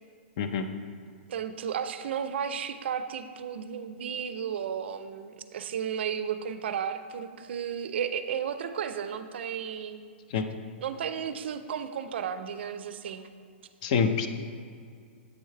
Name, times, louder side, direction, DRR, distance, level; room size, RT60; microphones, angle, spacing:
voice 1, 1.3-10.0 10.8-13.3, right 8 dB, 60° right, 10 dB, 0.4 m, -33 dB
voice 2, 13.8-14.3, left 6 dB, 35° left, 8 dB, 0.4 m, -26 dB
8.2 x 4.5 x 3.2 m, 2.2 s
hypercardioid pair, 165°, 7 cm